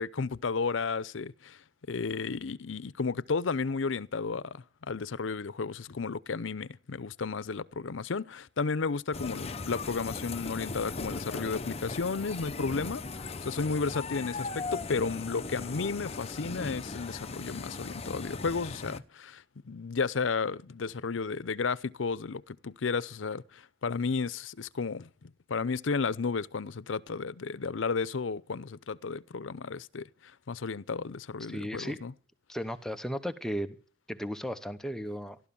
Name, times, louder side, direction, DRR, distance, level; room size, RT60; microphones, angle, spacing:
voice 1, 0.0-1.6 1.9-25.1 25.5-32.1, left 4 dB, 85° left, 0.6 m, -33 dB
sound 1, 9.1-19.0, left 3 dB, 35° left, 0.8 m, -38 dB
voice 2, 31.5-32.0 32.5-33.8 34.1-35.4, equal, 5° left, 0.9 m, -35 dB
15.0 x 12.5 x 7.0 m
head